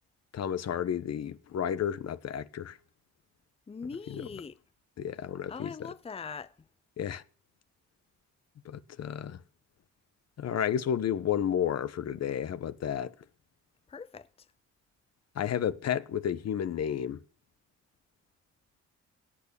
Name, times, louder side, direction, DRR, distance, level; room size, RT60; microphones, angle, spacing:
voice 1, 0.3-2.8 4.1-4.3 5.0-5.7 7.0-7.2 8.6-9.4 10.4-13.1 15.3-17.2, left 9 dB, 60° left, 1.2 m, -31 dB
voice 2, 3.7-4.6 5.5-6.7 13.9-14.5, left 5 dB, 20° left, 0.7 m, -41 dB
17.5 x 8.3 x 7.1 m
cardioid pair, 90°, 30 cm